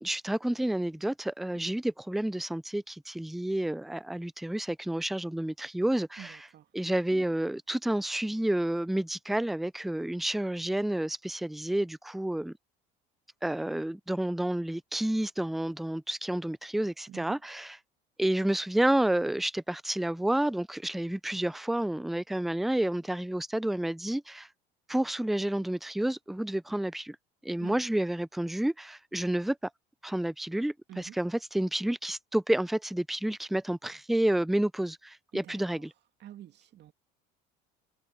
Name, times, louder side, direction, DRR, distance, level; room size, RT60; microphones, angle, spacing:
voice 1, 0.0-6.5 6.7-12.5 13.4-17.8 18.2-24.5 24.9-27.2 27.4-29.6 30.0-35.9, right 1 dB, ahead, 0.4 m, -30 dB
voice 2, 6.2-6.6 17.1-17.4 27.6-27.8 30.9-31.1 35.3-35.8 36.2-36.9, right 12 dB, 55° right, 2.7 m, -47 dB
supercardioid pair, 85°, 21 cm